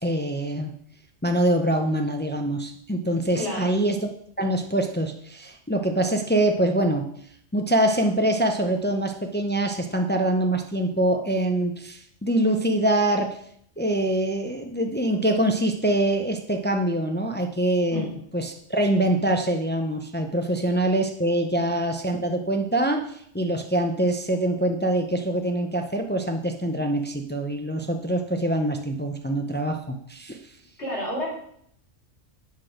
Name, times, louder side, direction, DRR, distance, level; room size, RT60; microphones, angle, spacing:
voice 1, 0.0-0.7 1.2-4.0 4.4-7.1 7.5-13.4 13.8-18.1 18.3-30.4, right 1 dB, 15° left, 4 dB, 0.3 m, -24 dB
voice 2, 3.3-3.7 17.9-18.2 30.8-31.3, left 1 dB, 55° left, -5 dB, 4.2 m, -30 dB
8.2 x 6.2 x 5.0 m, 0.68 s
omnidirectional pair, 1.4 m